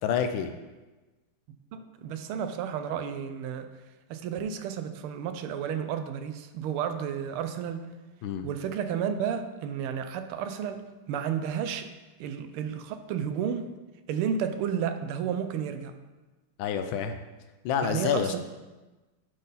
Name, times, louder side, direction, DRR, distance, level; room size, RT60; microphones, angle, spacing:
voice 1, 0.0-0.5 8.2-8.5 16.6-17.2 17.6-18.3, left 8 dB, 75° left, 8 dB, 1.3 m, -28 dB
voice 2, 1.7-3.7 4.1-7.9 8.4-11.9 12.2-13.7 14.1-15.9 17.8-18.4, right 8 dB, 85° right, 9 dB, 1.5 m, -32 dB
10.5 x 3.9 x 4.0 m, 1.2 s
omnidirectional pair, 2.3 m